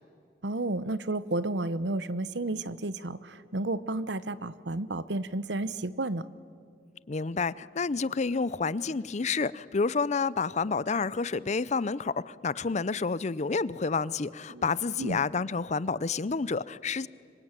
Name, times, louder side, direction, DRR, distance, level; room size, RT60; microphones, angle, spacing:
voice 1, 0.4-6.3 14.5-14.6 15.0-15.2, right 2 dB, 80° right, 16 dB, 0.9 m, -32 dB
voice 2, 7.1-17.1, left 4 dB, 40° left, 19 dB, 0.6 m, -29 dB
25.5 x 23.5 x 9.0 m, 2.3 s
head